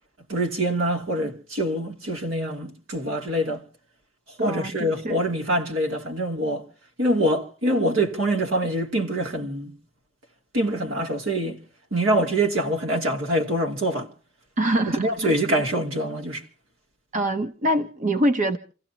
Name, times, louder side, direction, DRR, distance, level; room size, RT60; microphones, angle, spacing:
voice 1, 0.3-3.6 4.4-6.6 7.0-9.7 10.5-11.6 11.9-14.1 15.0-16.4, right 1 dB, 75° right, 2.8 m, -25 dB
voice 2, 4.4-5.2 14.6-15.3 17.1-18.6, right 1 dB, 40° right, 0.9 m, -24 dB
28.5 x 16.0 x 2.9 m
head